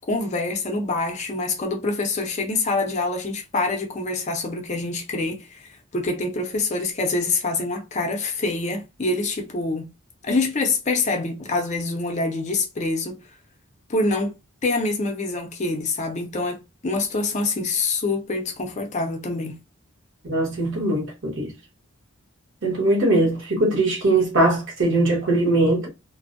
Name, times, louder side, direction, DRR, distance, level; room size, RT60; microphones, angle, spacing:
voice 1, 0.1-9.9 10.2-13.2 13.9-14.4 14.6-19.6, left 3 dB, 30° left, 0.4 m, -25 dB
voice 2, 20.2-21.5 22.6-25.9, right 2 dB, 60° right, 1.1 m, -21 dB
2.5 x 2.1 x 2.6 m
head